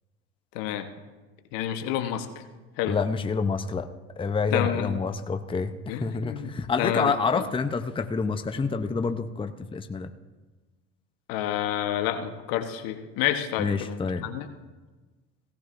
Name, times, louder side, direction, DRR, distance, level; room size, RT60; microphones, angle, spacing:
voice 1, 0.5-0.9 1.5-2.3 2.8-3.0 4.5-5.0 5.9-6.5 6.8-7.4 11.3-14.0 14.2-14.5, left 11 dB, 75° left, 7 dB, 1.2 m, -29 dB
voice 2, 2.8-3.9 4.2-10.1 13.6-14.3, left 5 dB, 15° left, 7 dB, 0.7 m, -28 dB
17.0 x 15.0 x 2.6 m, 1.3 s
supercardioid pair, 80°, 35 cm